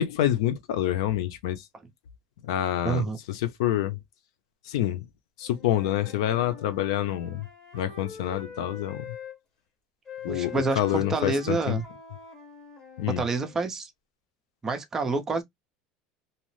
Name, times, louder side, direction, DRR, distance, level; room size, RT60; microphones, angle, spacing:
voice 1, 0.0-1.6 2.4-4.0 4.7-5.1 5.4-7.5 7.7-9.1 10.2-11.8 13.0-13.2, left 12 dB, 90° left, 0.6 m, -27 dB
voice 2, 2.8-3.2 10.3-11.8 13.2-13.9 14.6-15.4, right 4 dB, 15° right, 0.6 m, -28 dB
Wind instrument woodwind instrument, 5.4-9.4 10.0-13.6, left 6 dB, 25° left, 1.2 m, -44 dB
2.8 x 2.0 x 3.1 m
cardioid pair, 160°, 3 cm